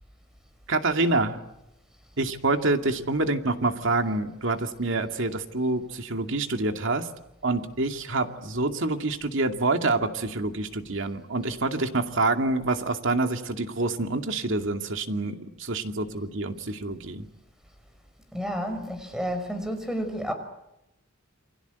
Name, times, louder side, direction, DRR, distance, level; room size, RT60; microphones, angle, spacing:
voice 1, 0.7-1.4 2.2-7.1 7.4-17.3, right 2 dB, 65° right, 2.4 m, -27 dB
voice 2, 18.3-20.3, equal, 5° right, 5.6 m, -30 dB
29.0 x 24.5 x 8.2 m
head